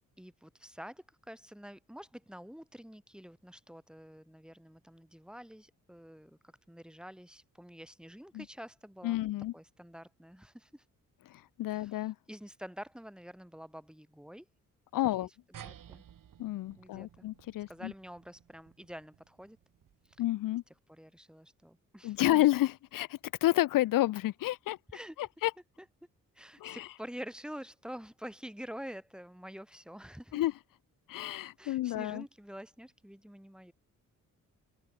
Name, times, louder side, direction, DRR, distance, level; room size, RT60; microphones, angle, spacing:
voice 1, 0.2-6.4 6.7-10.8 11.7-14.5 15.2-15.3 15.6-16.0 16.8-17.3 17.7-19.6 20.9-22.4 24.9-25.2 26.4-30.4 31.6-33.7, equal, ahead, 3.4 m, -47 dB
voice 2, 9.0-9.5 11.3-12.1 14.9-15.3 16.4-17.9 20.2-20.6 22.0-24.8 25.2-25.5 26.6-26.9 30.3-30.5 31.1-32.2, left 15 dB, 75° left, 0.6 m, -30 dB
sound 1, 15.5-20.4, right 9 dB, 70° right, 3.9 m, -55 dB
cardioid pair, 70°, 34 cm